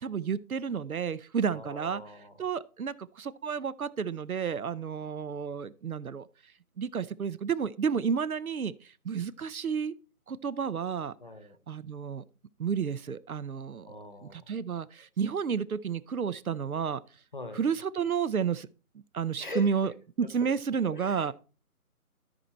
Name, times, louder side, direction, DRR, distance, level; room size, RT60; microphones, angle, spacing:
voice 1, 0.0-2.0 2.4-6.2 6.8-8.7 9.0-9.9 10.3-11.1 11.7-12.2 12.6-13.9 14.2-17.0 17.5-18.7 19.1-19.9 20.2-21.3, right 6 dB, 70° right, 0.7 m, -31 dB
voice 2, 1.5-2.3 11.2-11.6 13.9-14.4 17.3-17.6 19.4-19.7 20.4-20.5 20.9-21.3, left 2 dB, 35° left, 1.0 m, -42 dB
13.0 x 4.5 x 4.3 m
figure-of-eight pair, 175°, 45 cm